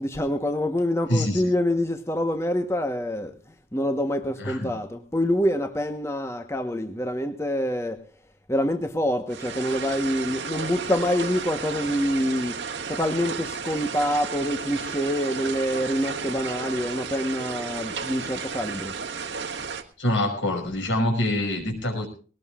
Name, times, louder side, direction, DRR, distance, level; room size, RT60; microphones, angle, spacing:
voice 1, 0.0-3.3 3.7-8.0 8.5-12.6 12.9-18.9, equal, 15° left, 6 dB, 1.1 m, -26 dB
voice 2, 1.1-1.4 4.4-4.7 20.0-22.1, left 1 dB, 80° left, 4 dB, 5.6 m, -25 dB
sound 1, 9.3-19.8, right 5 dB, 75° right, 1.7 m, -33 dB
20.5 x 18.5 x 2.4 m, 0.39 s
head